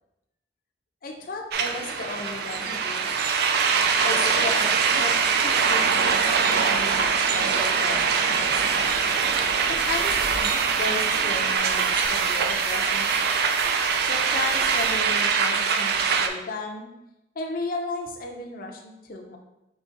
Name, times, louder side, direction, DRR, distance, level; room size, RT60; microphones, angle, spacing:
voice 1, 1.0-3.1 4.0-8.8 9.7-13.3 14.0-16.9 17.3-19.4, left 3 dB, 55° left, 1 dB, 0.6 m, -35 dB
sound 1, 1.5-16.3, right 6 dB, 60° right, 0.4 m, -23 dB
sound 2, 1.5-11.6, right 1 dB, 85° right, 1.4 m, -41 dB
sound 3, 8.4-15.3, right 2 dB, 40° right, 0.9 m, -41 dB
4.0 x 3.0 x 3.7 m, 0.90 s
head